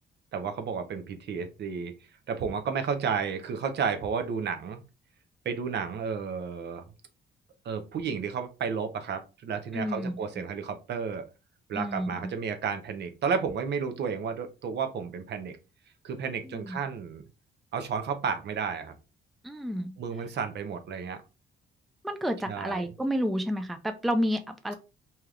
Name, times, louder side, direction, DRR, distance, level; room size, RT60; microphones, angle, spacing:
voice 1, 0.3-1.9 2.3-4.8 5.4-6.8 7.6-11.3 11.7-15.6 16.0-17.2 17.7-18.9 20.0-21.2 22.5-22.8, right 6 dB, 60° right, 0.6 m, -32 dB
voice 2, 9.7-10.2 11.7-12.3 16.4-16.8 19.4-20.0 22.0-24.7, equal, ahead, 0.4 m, -30 dB
3.3 x 2.8 x 2.4 m
cardioid pair, 90°, 20 cm